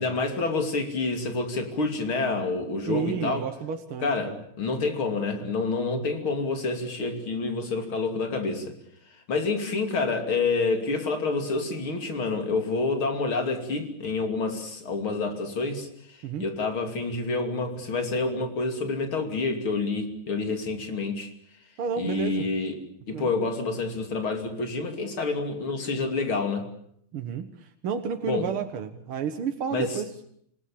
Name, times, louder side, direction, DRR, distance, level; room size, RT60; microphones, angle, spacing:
voice 1, 0.0-3.5 4.0-8.7 9.3-15.9 16.4-21.3 22.0-22.8 23.1-26.7 28.3-28.5 29.7-29.9, left 3 dB, 75° left, 5 dB, 3.7 m, -28 dB
voice 2, 2.9-4.4 16.2-16.5 21.8-22.5 23.1-23.3 27.1-30.1, right 6 dB, 85° right, 6 dB, 2.2 m, -31 dB
27.5 x 18.5 x 8.6 m, 0.69 s
omnidirectional pair, 2.3 m